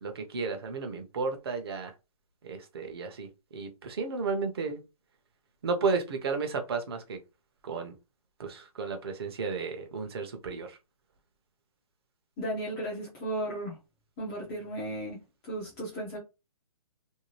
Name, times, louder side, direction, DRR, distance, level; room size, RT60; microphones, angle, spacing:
voice 1, 0.0-1.9 2.4-4.8 5.6-7.2 7.6-8.0 8.4-10.8, right 4 dB, 40° right, 0.6 m, -33 dB
voice 2, 12.4-13.8 14.2-16.2, right 1 dB, 5° left, 0.3 m, -35 dB
2.7 x 2.3 x 3.0 m
hypercardioid pair, 165°, 19 cm